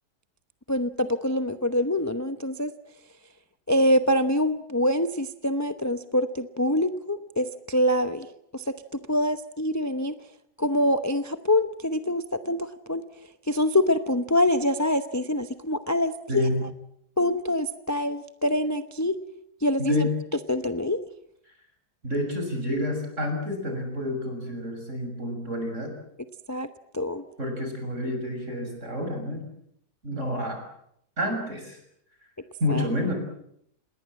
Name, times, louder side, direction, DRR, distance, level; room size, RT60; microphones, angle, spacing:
voice 1, 0.7-2.7 3.7-8.3 8.5-8.7 9.1-10.1 10.6-13.0 13.5-16.5 17.2-19.2 19.6-20.1 20.5-21.0 26.5-26.7 26.9-27.2 32.7-32.8, left 1 dB, 15° left, 9 dB, 0.6 m, -25 dB
voice 2, 16.3-16.6 19.8-20.1 22.0-25.9 27.4-29.4 30.0-30.6 31.2-31.8 32.6-33.1, left 1 dB, 45° right, 4 dB, 7.0 m, -29 dB
28.0 x 20.5 x 7.6 m, 0.72 s
omnidirectional pair, 1.7 m